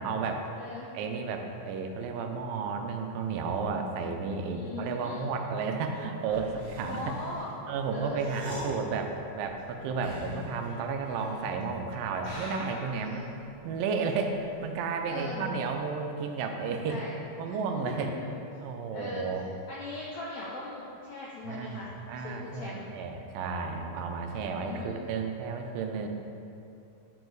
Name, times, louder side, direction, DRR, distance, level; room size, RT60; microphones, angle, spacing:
voice 1, 0.0-0.5 0.9-7.1 7.7-13.3 13.6-17.0 17.4-18.1 18.6-19.5 21.4-21.8 22.1-26.1, right 5 dB, 80° right, 4 dB, 2.2 m, -32 dB
voice 2, 0.6-0.9 4.5-5.3 6.8-7.5 7.9-8.7 13.0-13.3 15.1-15.4 16.9-17.1 17.9-18.3 18.9-19.4 19.7-21.9 22.2-22.8 24.6-25.1, left 3 dB, 90° left, -5 dB, 1.6 m, -40 dB
sound 1, 6.2-11.7 12.1-15.1 15.3-15.8, equal, 35° left, 0.7 m, -44 dB
9.7 x 4.8 x 3.9 m, 2.7 s
omnidirectional pair, 4.2 m